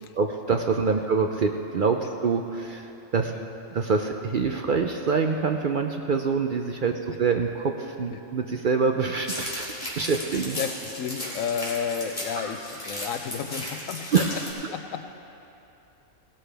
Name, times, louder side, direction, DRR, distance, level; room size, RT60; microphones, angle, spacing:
voice 1, 0.2-2.9 3.1-3.3 3.7-10.6 14.1-14.2, right 5 dB, 55° right, 4 dB, 0.6 m, -25 dB
sound 1, 9.2-14.5, left 1 dB, 30° left, 2.9 m, -35 dB
voice 2, 10.6-14.4 14.7-15.1, left 7 dB, 85° left, 8 dB, 1.1 m, -32 dB
17.5 x 13.0 x 3.4 m, 2.9 s
omnidirectional pair, 1.3 m